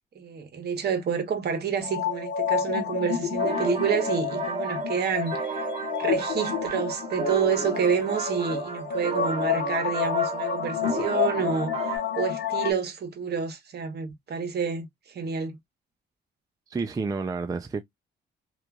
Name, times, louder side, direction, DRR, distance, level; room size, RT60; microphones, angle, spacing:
voice 1, 0.1-5.6 6.0-15.6, right 6 dB, 55° right, 1.0 m, -29 dB
sound 1, 1.8-12.7, left 8 dB, 65° left, 0.8 m, -29 dB
sound 2, 3.4-12.0, right 4 dB, 35° right, 1.2 m, -33 dB
voice 2, 16.7-17.8, right 4 dB, 20° right, 0.4 m, -30 dB
2.9 x 2.4 x 2.3 m
cardioid pair, 90°, 20 cm